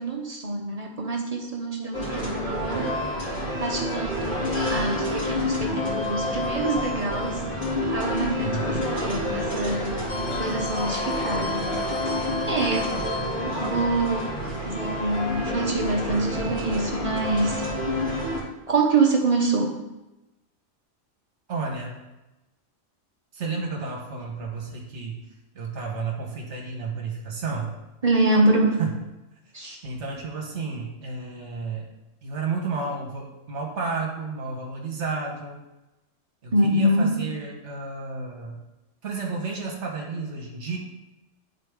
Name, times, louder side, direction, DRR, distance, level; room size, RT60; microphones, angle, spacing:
voice 1, 0.0-2.9 3.6-7.4 7.9-10.0 10.4-11.7 12.5-12.9 13.5-14.3 14.7-17.6 18.7-19.7 28.0-28.8 29.5-29.8 36.5-37.1, right 2 dB, 35° right, -1 dB, 0.8 m, -25 dB
sound 1, 1.9-18.4, left 1 dB, 45° left, 2.1 m, -28 dB
voice 2, 8.4-9.1 21.5-22.0 23.3-25.2 25.5-27.8 28.8-28.9 29.8-31.9 32.2-35.6 36.4-38.6 39.0-40.8, right 4 dB, 70° right, -1 dB, 1.4 m, -32 dB
9.9 x 4.0 x 3.5 m, 1.0 s
omnidirectional pair, 1.3 m